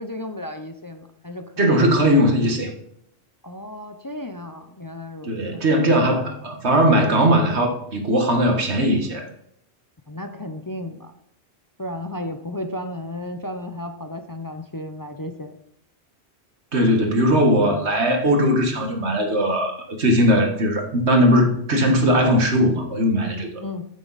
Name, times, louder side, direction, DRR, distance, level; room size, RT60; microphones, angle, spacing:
voice 1, 0.0-1.8 3.4-5.6 10.1-11.1 11.8-15.6 23.6-23.9, left 1 dB, 25° left, 7 dB, 0.5 m, -34 dB
voice 2, 1.6-2.7 5.2-9.3 16.7-23.6, equal, 80° right, 3 dB, 1.9 m, -19 dB
9.5 x 9.0 x 4.1 m, 0.71 s
omnidirectional pair, 1.1 m